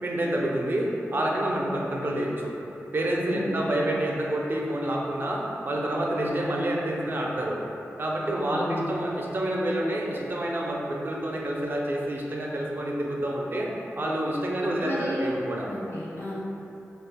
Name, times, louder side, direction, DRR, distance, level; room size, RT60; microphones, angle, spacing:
voice 1, 0.0-2.5 2.9-7.6 8.0-15.7, right 1 dB, 45° right, -2 dB, 0.4 m, -28 dB
voice 2, 3.3-3.7 8.5-8.9 14.8-15.3 15.7-16.3, equal, 65° left, -7 dB, 0.6 m, -33 dB
2.5 x 2.3 x 3.4 m, 2.9 s
wide cardioid pair, 100°, 5 cm